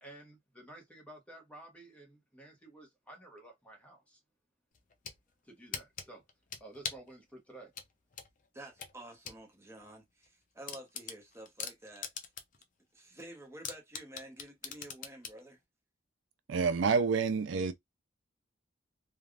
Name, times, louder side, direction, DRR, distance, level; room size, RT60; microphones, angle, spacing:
voice 1, 0.0-4.2 5.4-6.2 6.6-7.7, right 1 dB, 5° left, 1.1 m, -52 dB
sound 1, 4.7-5.2 5.7-7.1 7.7-9.4 9.8-9.9 10.2-10.3 10.7-12.6 13.0-13.1 13.6-15.4, left 7 dB, 45° left, 0.6 m, -41 dB
voice 2, 8.5-12.3 12.9-15.6, right 1 dB, 15° right, 0.9 m, -50 dB
voice 3, 16.5-17.7, right 5 dB, 80° right, 0.4 m, -28 dB
3.3 x 2.3 x 2.4 m
head